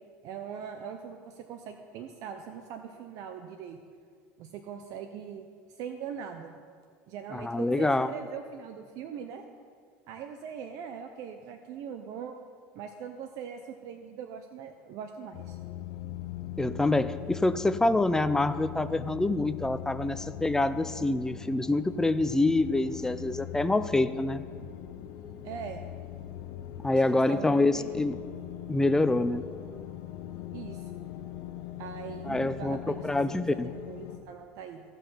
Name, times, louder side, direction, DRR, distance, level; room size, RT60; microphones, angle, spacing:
voice 1, 0.2-3.8 4.4-5.5 5.8-6.5 7.1-9.4 10.1-12.3 12.7-15.6 25.4-25.8 26.9-28.2 30.5-30.9 31.8-33.1 33.5-33.6 33.8-34.8, right 7 dB, 65° right, 6 dB, 0.7 m, -41 dB
voice 2, 7.3-8.1 16.6-24.4 26.8-28.1 28.7-29.5 32.2-33.7, left 2 dB, 10° left, 12 dB, 0.5 m, -26 dB
sound 1, 15.3-34.2, left 12 dB, 75° left, 0.9 m, -41 dB
15.5 x 5.4 x 5.7 m, 2.1 s
supercardioid pair, 105°, 6 cm